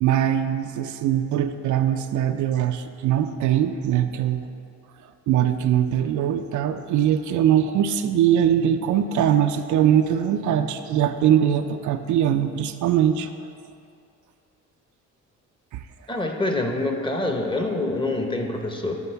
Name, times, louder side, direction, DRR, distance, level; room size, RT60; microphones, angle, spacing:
voice 1, 0.0-4.5 5.3-13.3, right 10 dB, 75° right, 8 dB, 0.5 m, -21 dB
voice 2, 16.1-19.0, left 2 dB, 15° left, 3 dB, 0.9 m, -26 dB
10.0 x 4.8 x 4.5 m, 2.5 s
cardioid pair, 90°, 30 cm